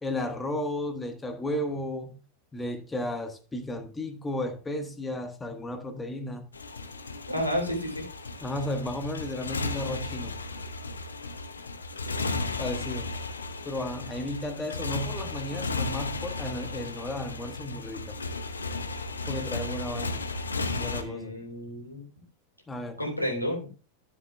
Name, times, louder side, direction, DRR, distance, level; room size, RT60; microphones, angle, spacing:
voice 1, 0.0-2.2 2.5-6.5 8.4-10.3 12.6-13.1 13.6-18.2 19.3-20.2 20.7-21.3 22.7-23.0, left 1 dB, 10° left, 1.4 m, -34 dB
Motorcycle, 6.5-21.0, left 3 dB, 75° left, 0.9 m, -34 dB
voice 2, 7.3-8.0 21.0-22.0 23.0-23.7, equal, 90° left, 3.1 m, -31 dB
13.5 x 7.2 x 2.3 m
figure-of-eight pair, 90°, 0 cm